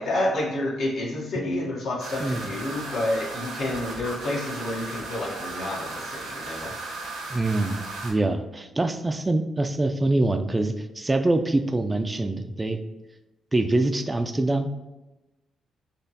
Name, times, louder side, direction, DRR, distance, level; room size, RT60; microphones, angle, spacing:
voice 1, 0.0-6.7, left 1 dB, 65° left, -3 dB, 1.1 m, -29 dB
sound 1, 2.0-8.1, right 3 dB, 85° right, 1.1 m, -36 dB
voice 2, 7.3-12.8 13.5-14.7, right 2 dB, 25° right, 7 dB, 0.4 m, -25 dB
4.1 x 3.0 x 2.8 m, 1.0 s
hypercardioid pair, 45°, 0 cm